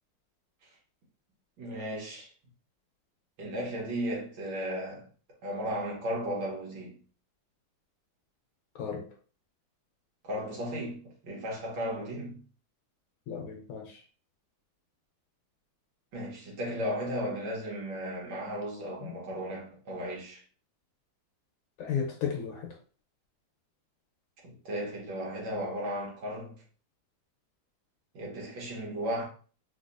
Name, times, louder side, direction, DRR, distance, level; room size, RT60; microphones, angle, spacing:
voice 1, 1.6-2.3 3.4-5.1 5.4-7.0 10.2-12.4 16.1-20.4 24.4-26.5 28.1-29.2, equal, 65° right, 1.9 m, -35 dB
voice 2, 13.3-14.0 19.0-19.1 21.8-22.7, left 7 dB, 70° left, 1.4 m, -34 dB
4.0 x 2.8 x 2.6 m
omnidirectional pair, 2.4 m